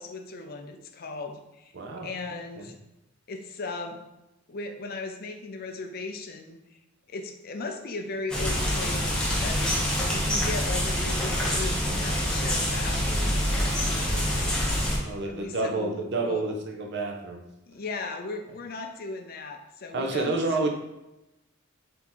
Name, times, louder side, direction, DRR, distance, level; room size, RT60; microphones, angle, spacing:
voice 1, 0.0-1.7 2.0-2.7 3.3-4.0 4.5-6.8 7.1-15.9 16.2-16.5 17.7-20.3 20.6-20.7, left 3 dB, 45° left, 4 dB, 0.5 m, -37 dB
voice 2, 1.7-2.7 15.0-17.4 19.9-20.7, right 2 dB, 55° right, 3 dB, 0.6 m, -29 dB
sound 1, 8.3-15.0, equal, 5° left, 0.7 m, -26 dB
3.5 x 2.8 x 4.2 m, 0.93 s
head